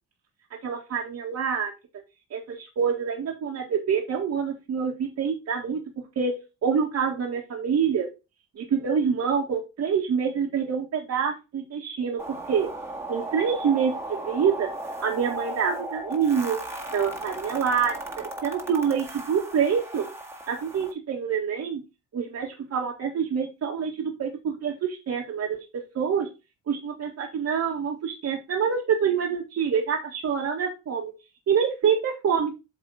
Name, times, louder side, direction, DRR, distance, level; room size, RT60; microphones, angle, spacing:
voice 1, 0.6-1.7 2.3-5.8 6.2-6.3 6.6-8.1 8.6-12.7 13.1-14.7 15.0-16.6 16.9-20.1 20.5-21.8 22.1-25.6 26.0-26.3 26.7-31.1 31.5-32.5, right 7 dB, 60° right, -3 dB, 1.8 m, -26 dB
sound 1, 12.2-20.9, right 1 dB, 10° right, 1.8 m, -36 dB
7.9 x 3.6 x 4.8 m, 0.27 s
cardioid pair, 90°, 30 cm